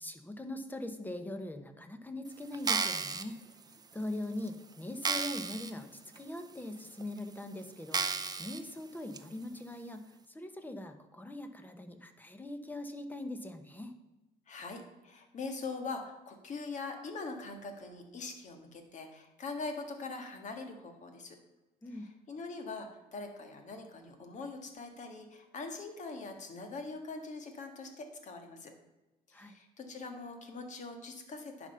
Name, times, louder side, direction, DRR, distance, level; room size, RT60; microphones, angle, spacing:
voice 1, 0.0-3.4 3.9-13.9 21.8-22.1 29.3-29.5, left 1 dB, 10° left, 7 dB, 1.0 m, -41 dB
sound 1, 2.5-3.2 3.9-4.0 4.5-4.6 5.0-5.7 6.2-6.3 7.0-7.1 7.9-8.6 9.1-9.2, right 5 dB, 25° right, 0.6 m, -32 dB
voice 2, 14.5-21.4 21.9-28.7 29.3-31.7, left 3 dB, 45° left, 5 dB, 1.7 m, -42 dB
10.5 x 5.2 x 5.5 m, 1.1 s
cardioid pair, 110°, 17 cm